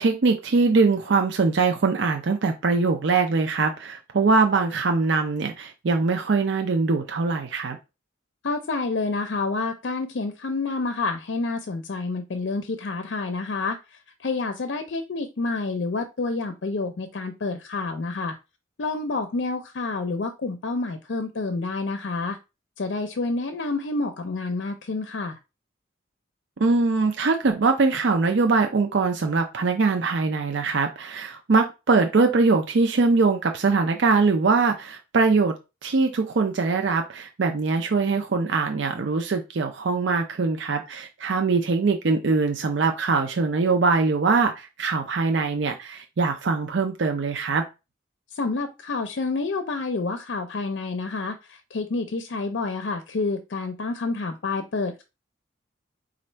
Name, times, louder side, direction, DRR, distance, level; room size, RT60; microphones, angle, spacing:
voice 1, 0.0-7.8 26.6-35.5 35.8-47.6, right 4 dB, 65° right, 0.5 m, -22 dB
voice 2, 8.4-18.4 18.8-22.4 22.8-25.4 48.3-55.0, left 3 dB, 65° left, 0.5 m, -28 dB
4.1 x 2.5 x 4.4 m
head